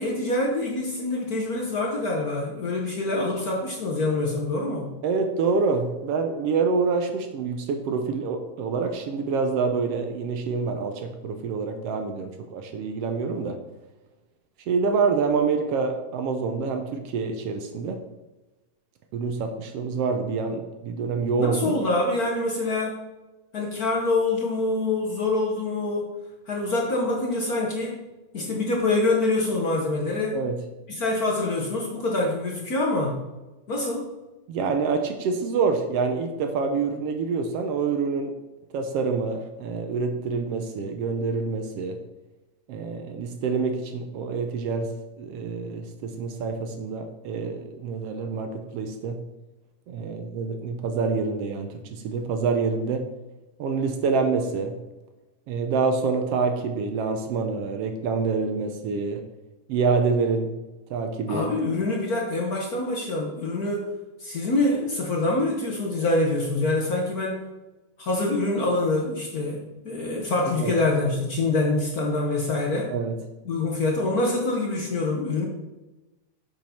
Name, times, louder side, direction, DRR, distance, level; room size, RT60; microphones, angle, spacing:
voice 1, 0.0-4.9 21.4-23.0 23.5-26.1 26.5-28.0 28.3-30.4 30.9-33.2 33.7-34.1 61.3-63.9 64.2-67.4 68.0-72.9 73.5-75.5, left 2 dB, 65° left, -1 dB, 0.8 m, -25 dB
voice 2, 5.0-13.6 14.7-18.0 19.1-21.8 30.3-30.6 34.5-38.3 38.7-42.0 42.7-44.9 45.2-49.2 49.9-53.1 53.6-54.8 55.5-59.2 59.7-60.5 60.9-61.5 70.4-70.7 72.9-73.2, right 4 dB, 70° right, 5 dB, 1.5 m, -26 dB
7.5 x 5.3 x 5.7 m, 1.1 s
omnidirectional pair, 3.3 m